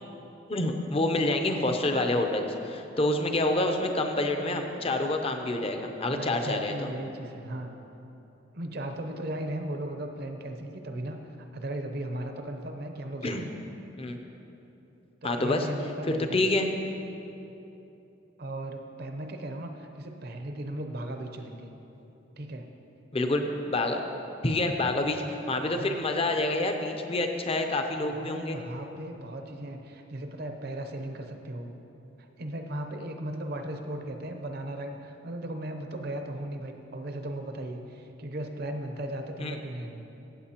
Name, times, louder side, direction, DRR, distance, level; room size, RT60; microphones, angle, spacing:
voice 1, 0.5-6.9 13.2-13.5 14.0-14.2 15.2-15.7 16.1-16.7 23.1-24.0 24.4-28.6 39.4-39.6, left 2 dB, 30° left, 5 dB, 0.6 m, -27 dB
voice 2, 6.0-7.7 8.5-11.2 11.5-13.5 15.2-16.7 18.4-21.7 22.4-22.7 25.7-26.0 28.2-31.7 32.4-40.0, right 1 dB, 55° right, 5 dB, 0.7 m, -37 dB
15.0 x 7.8 x 2.9 m, 2.9 s
head